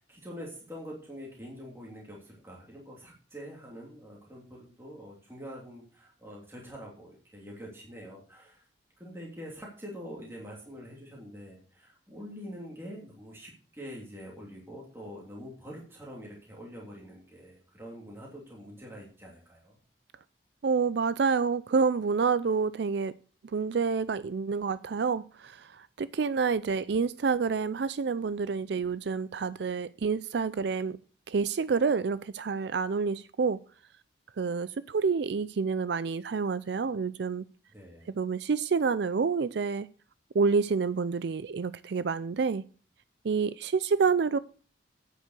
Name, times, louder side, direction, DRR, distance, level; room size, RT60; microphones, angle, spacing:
voice 1, 0.0-8.7 9.0-19.8 37.7-38.1, equal, 15° right, 3.1 m, -45 dB
voice 2, 20.6-23.1 23.5-31.0 31.3-33.6 34.4-37.4 38.1-39.9 40.3-42.6 43.2-44.4, right 5 dB, 65° right, 0.4 m, -28 dB
9.3 x 8.1 x 6.7 m
head